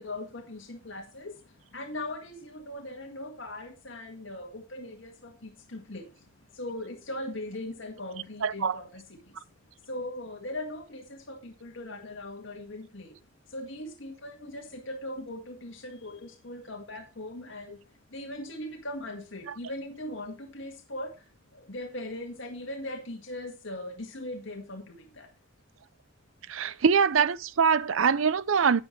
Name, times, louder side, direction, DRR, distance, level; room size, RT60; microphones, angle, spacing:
voice 1, 0.0-1.3 1.7-5.1 5.7-6.0 6.6-9.0 9.9-11.0 11.3-13.1 13.5-17.8 18.1-21.1 21.7-24.8 25.2-25.3, left 1 dB, 70° left, 2.0 m, -39 dB
voice 2, 8.4-8.8 26.5-28.8, right 6 dB, 80° right, 0.6 m, -23 dB
11.5 x 8.3 x 3.3 m
head